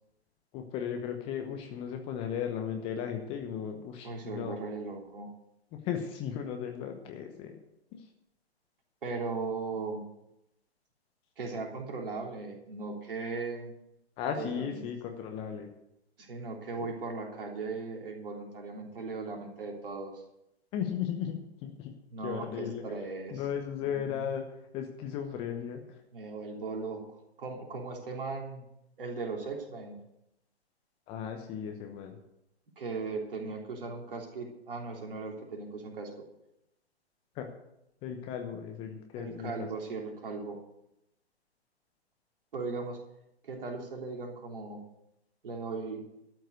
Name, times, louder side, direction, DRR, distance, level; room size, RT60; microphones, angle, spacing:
voice 1, 0.5-4.5 5.7-7.6 7.9-8.1 14.2-15.7 20.7-21.9 22.2-22.8 23.3-24.4 24.7-25.8 31.1-32.2 37.3-37.5 38.0-39.7, left 8 dB, 15° left, 5 dB, 0.9 m, -36 dB
voice 2, 4.0-5.3 9.0-10.0 11.4-13.7 14.4-14.9 16.2-20.2 22.1-23.4 23.9-24.2 26.1-28.7 29.0-30.0 32.8-36.2 39.2-40.6 42.5-43.0 43.4-44.8 45.4-46.0, right 4 dB, 55° right, 1 dB, 3.5 m, -38 dB
13.0 x 7.7 x 8.1 m, 0.84 s
figure-of-eight pair, 130°, 33 cm